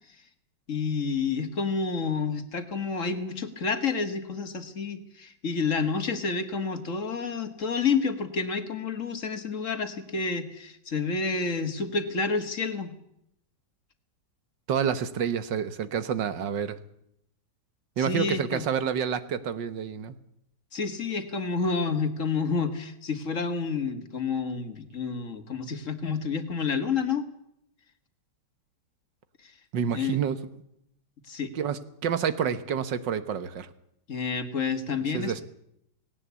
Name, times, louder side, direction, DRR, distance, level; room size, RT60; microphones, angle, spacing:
voice 1, 0.7-12.9 18.0-18.6 20.7-27.3 29.9-30.2 31.3-31.5 34.1-35.4, left 5 dB, 45° left, 9 dB, 2.0 m, -29 dB
voice 2, 14.7-16.8 18.0-20.2 29.7-30.4 31.6-33.7 35.1-35.4, right 7 dB, 75° right, 13 dB, 1.9 m, -28 dB
18.5 x 18.0 x 8.3 m, 0.76 s
omnidirectional pair, 2.0 m